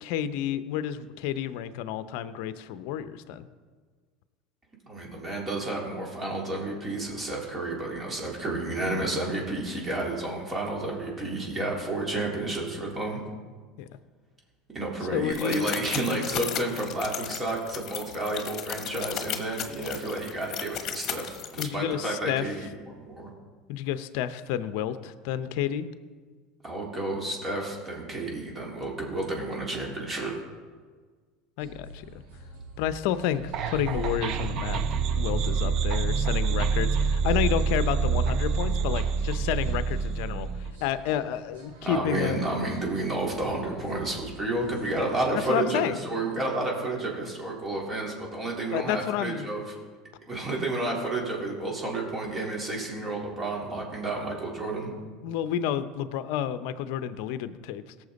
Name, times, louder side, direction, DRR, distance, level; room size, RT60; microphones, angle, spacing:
voice 1, 0.0-3.5 13.8-13.9 15.1-15.7 21.6-22.5 23.7-25.9 31.6-32.0 32.8-34.8 35.2-42.6 45.5-46.0 48.7-49.5 55.2-57.8, left 10 dB, 65° left, 13 dB, 0.6 m, -30 dB
voice 2, 4.9-13.2 14.7-23.3 26.6-30.3 41.8-49.6 50.3-54.9, right 2 dB, 25° right, -2 dB, 3.7 m, -31 dB
sound 1, 15.3-21.6, left 10 dB, 50° left, 1.1 m, -35 dB
sound 2, 31.6-45.4, right 1 dB, 85° right, 3.5 m, -48 dB
sound 3, 33.5-40.7, right 5 dB, 50° right, 0.9 m, -26 dB
17.5 x 7.2 x 4.1 m, 1.5 s
hypercardioid pair, 90°, 0 cm